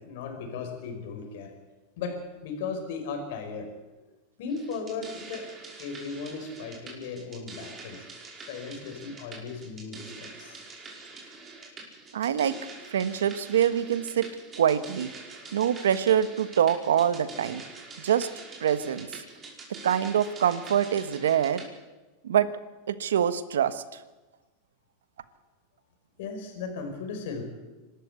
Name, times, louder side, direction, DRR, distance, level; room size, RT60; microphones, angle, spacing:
voice 1, 0.0-1.5 2.0-4.0 4.4-5.5 5.8-8.1 8.5-10.6 26.2-27.4, left 5 dB, 70° left, 5 dB, 5.4 m, -36 dB
sound 1, 4.5-21.7, right 3 dB, 25° right, 5.3 m, -45 dB
voice 2, 12.1-12.5 12.9-14.3 14.6-15.1 15.5-17.6 18.0-18.3 18.6-19.2 19.8-21.6 22.2-22.5 22.9-23.8, right 9 dB, 90° right, 13 dB, 1.2 m, -25 dB
25.5 x 13.0 x 8.3 m, 1.2 s
hypercardioid pair, 110°, 0 cm